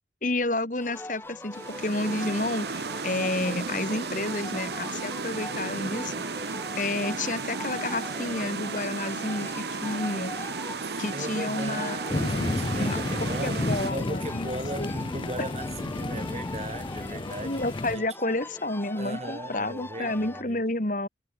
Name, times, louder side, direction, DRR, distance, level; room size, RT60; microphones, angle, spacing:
voice 1, 0.2-6.1 6.8-10.3 11.0-12.0 12.8-13.0 13.4-14.5 14.8-14.9 17.2-21.1, left 2 dB, 45° left, 2.4 m, -30 dB
sound 1, 0.8-20.4, left 1 dB, 15° left, 3.7 m, -42 dB
sound 2, 1.5-13.9, right 4 dB, 70° right, 1.3 m, -34 dB
voice 2, 10.8-17.6 17.9-18.4 19.0-20.6, right 1 dB, 40° right, 5.8 m, -38 dB
sound 3, 12.1-18.0, left 2 dB, 30° left, 0.5 m, -31 dB
head